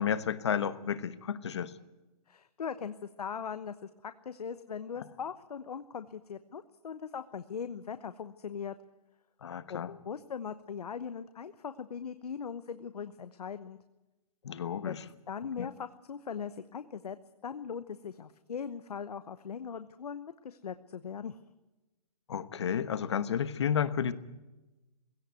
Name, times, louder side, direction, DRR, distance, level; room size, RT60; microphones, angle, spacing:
voice 1, 0.0-1.7 9.4-9.9 14.4-15.0 15.6-15.7 22.3-24.1, left 8 dB, 45° left, 15 dB, 1.1 m, -32 dB
voice 2, 2.3-8.7 9.7-13.8 14.8-14.9 15.3-17.2 17.4-21.4, left 7 dB, 80° left, 11 dB, 1.0 m, -40 dB
17.0 x 16.5 x 9.3 m, 1.1 s
hypercardioid pair, 175°, 20 cm